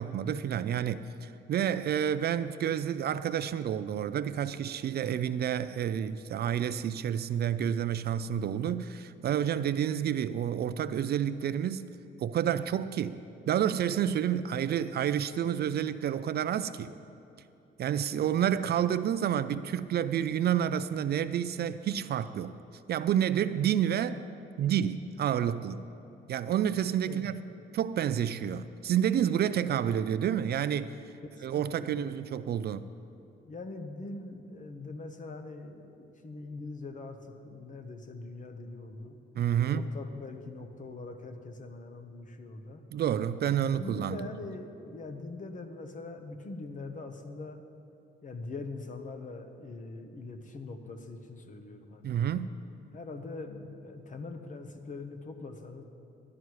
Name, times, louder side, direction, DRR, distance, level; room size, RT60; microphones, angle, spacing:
voice 1, 0.0-11.9 12.2-16.9 17.8-22.5 22.9-24.2 24.6-25.8 26.3-27.4 27.7-31.0 31.4-32.8 39.4-39.9 42.9-44.3 52.0-52.5, right 9 dB, 55° right, 13 dB, 0.4 m, -29 dB
voice 2, 31.2-32.1 33.5-39.1 39.7-42.8 43.6-47.6 48.2-52.2 52.9-55.8, left 3 dB, 40° left, 6 dB, 1.1 m, -42 dB
12.5 x 10.5 x 4.7 m, 2.7 s
cardioid pair, 90°, 20 cm